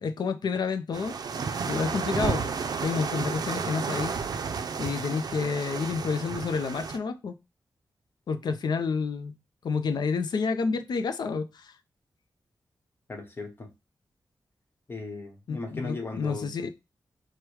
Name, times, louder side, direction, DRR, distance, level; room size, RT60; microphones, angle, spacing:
voice 1, 0.0-1.2 1.7-2.5 2.8-4.2 4.8-7.4 8.3-9.3 9.6-11.7 15.5-16.7, left 5 dB, 70° left, 0.5 m, -29 dB
sound 1, 0.9-7.0, right 5 dB, 60° right, 0.5 m, -32 dB
voice 2, 13.1-13.7 14.9-16.5, left 3 dB, 30° left, 1.1 m, -37 dB
4.7 x 2.2 x 4.6 m
wide cardioid pair, 160°, 7 cm